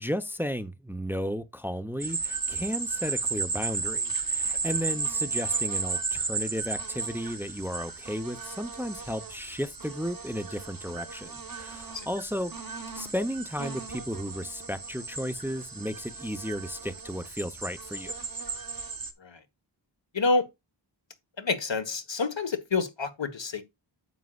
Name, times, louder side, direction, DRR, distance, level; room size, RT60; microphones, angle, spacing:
voice 1, 0.0-12.5 12.9-18.1, equal, 5° right, 0.8 m, -34 dB
sound 1, 2.0-19.1, right 4 dB, 45° right, 1.4 m, -34 dB
voice 2, 21.4-23.6, left 4 dB, 65° left, 1.5 m, -28 dB
9.5 x 7.5 x 2.4 m
wide cardioid pair, 50°, 48 cm